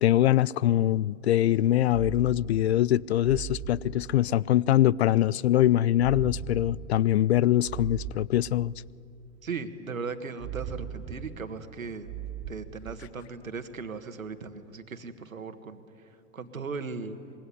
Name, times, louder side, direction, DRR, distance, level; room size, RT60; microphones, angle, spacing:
voice 1, 0.0-8.7, left 13 dB, 50° left, 0.5 m, -23 dB
sound 1, 1.9-2.8 3.2-4.5 6.0-7.1 7.6-8.9 10.4-11.5 12.0-13.2, right 9 dB, 45° right, 2.4 m, -39 dB
voice 2, 9.4-12.1 12.5-17.2, right 4 dB, 75° right, 1.8 m, -38 dB
25.0 x 22.0 x 9.6 m
figure-of-eight pair, 100°, 41 cm